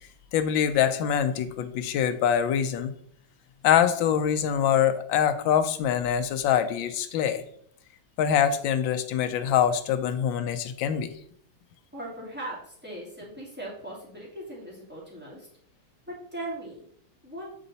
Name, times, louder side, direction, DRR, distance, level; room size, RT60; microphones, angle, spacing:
voice 1, 0.3-2.9 3.6-7.4 8.2-11.1, left 9 dB, 75° left, 9 dB, 1.3 m, -24 dB
voice 2, 11.9-15.5 16.1-16.9 17.2-17.5, right 1 dB, 5° right, -6 dB, 2.5 m, -39 dB
8.8 x 4.0 x 4.1 m, 0.66 s
omnidirectional pair, 2.2 m